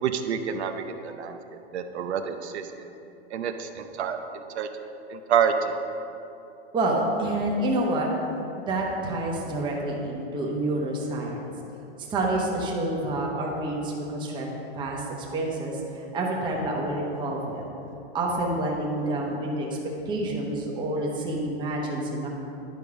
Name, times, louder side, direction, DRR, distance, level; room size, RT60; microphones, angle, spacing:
voice 1, 0.0-1.4 1.7-2.9 3.3-4.7 5.1-5.8, right 7 dB, 80° right, 7 dB, 0.7 m, -28 dB
voice 2, 6.7-8.1 8.7-11.4 12.0-14.5 14.7-15.0 15.3-17.6 18.1-19.7 20.1-22.3, right 1 dB, 15° right, -1 dB, 0.9 m, -28 dB
10.5 x 5.3 x 4.8 m, 2.9 s
hypercardioid pair, 160°, 33 cm